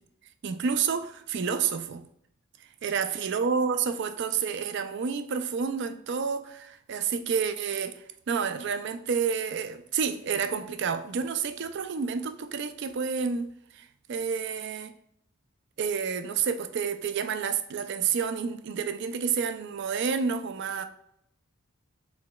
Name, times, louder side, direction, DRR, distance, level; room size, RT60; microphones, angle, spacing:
voice 1, 0.4-2.0 2.6-13.5 13.7-14.9 15.8-20.8, right 6 dB, 55° right, 9 dB, 0.4 m, -29 dB
4.8 x 4.0 x 2.2 m, 0.73 s
head